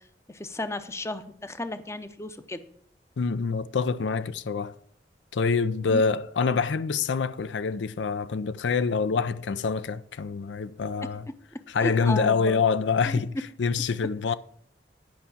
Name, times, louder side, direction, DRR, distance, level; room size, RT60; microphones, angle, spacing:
voice 1, 0.3-2.6 5.8-6.0 11.8-12.6 13.1-13.2, left 1 dB, 15° left, 0.6 m, -33 dB
voice 2, 3.2-4.8 5.3-11.3 11.7-14.3, left 5 dB, 85° left, 0.5 m, -26 dB
10.5 x 5.6 x 7.1 m
head